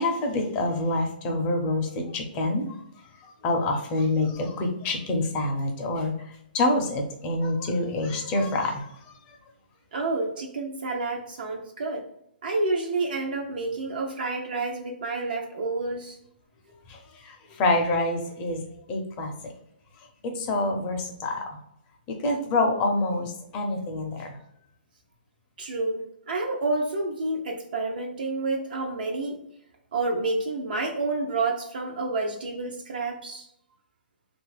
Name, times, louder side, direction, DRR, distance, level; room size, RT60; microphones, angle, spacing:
voice 1, 0.0-2.6 3.2-6.1 6.5-9.1 16.9-18.6 18.9-19.3 20.2-21.6 22.1-24.4, left 2 dB, 25° left, 3 dB, 0.5 m, -27 dB
voice 2, 9.9-12.1 12.4-16.2 25.6-29.4 29.9-33.5, right 3 dB, 65° right, 1 dB, 0.5 m, -29 dB
2.8 x 2.4 x 3.2 m, 0.77 s
hypercardioid pair, 160°, 5 cm